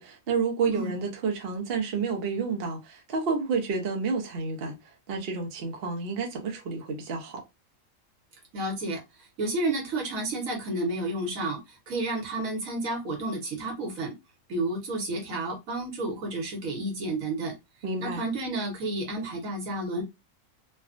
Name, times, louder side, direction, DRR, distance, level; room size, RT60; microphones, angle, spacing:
voice 1, 0.0-4.7 5.1-7.4 17.8-18.2, right 4 dB, 50° right, 0.8 m, -30 dB
voice 2, 8.5-11.6 11.9-14.1 14.5-17.5 18.0-20.0, right 2 dB, 75° right, 1.4 m, -31 dB
3.2 x 2.2 x 2.5 m
omnidirectional pair, 1.5 m